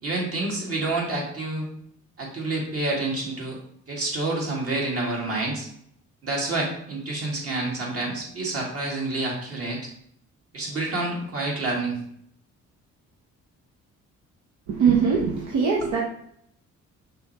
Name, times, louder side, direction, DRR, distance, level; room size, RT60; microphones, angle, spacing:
voice 1, 0.0-1.7 2.2-3.6 3.9-5.7 6.2-9.8 10.5-12.0 15.8-16.0, right 2 dB, 50° right, -3 dB, 1.9 m, -28 dB
voice 2, 14.7-16.0, right 6 dB, 70° right, -1 dB, 0.8 m, -21 dB
5.5 x 3.3 x 2.9 m, 0.67 s
cardioid pair, 90°, 30 cm